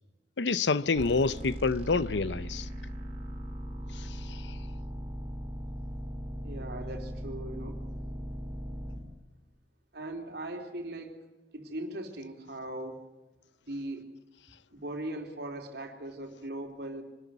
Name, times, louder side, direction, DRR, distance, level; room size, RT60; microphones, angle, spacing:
voice 1, 0.4-2.7, left 4 dB, 80° left, 0.7 m, -27 dB
sound 1, 0.9-9.0, equal, 40° right, 4.8 m, -39 dB
voice 2, 6.4-7.8 9.9-11.2 11.5-13.0 13.6-14.0 14.7-17.0, right 1 dB, 65° right, 3.6 m, -39 dB
25.5 x 13.5 x 9.4 m
head